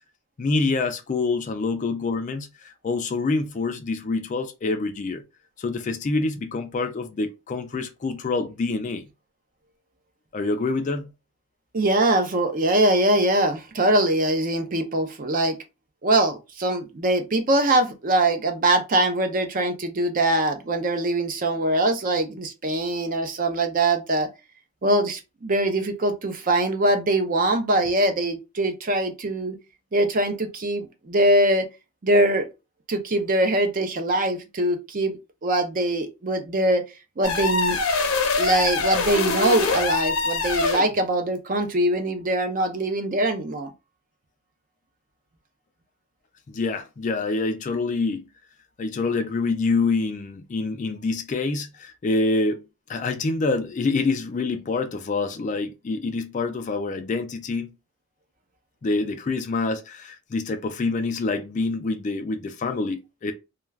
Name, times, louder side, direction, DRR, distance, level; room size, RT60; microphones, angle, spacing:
voice 1, 0.4-5.2 5.6-9.1 10.3-11.1 46.5-48.2 48.8-57.7 58.8-63.3, left 3 dB, 35° left, 0.3 m, -26 dB
voice 2, 11.7-15.5 16.0-24.3 24.8-29.6 29.9-31.7 32.0-32.5 32.9-36.8 37.2-37.8 38.4-43.7, right 1 dB, 40° right, 0.5 m, -22 dB
sound 1, 37.2-40.9, left 3 dB, 75° left, 0.6 m, -24 dB
2.3 x 2.3 x 3.2 m
head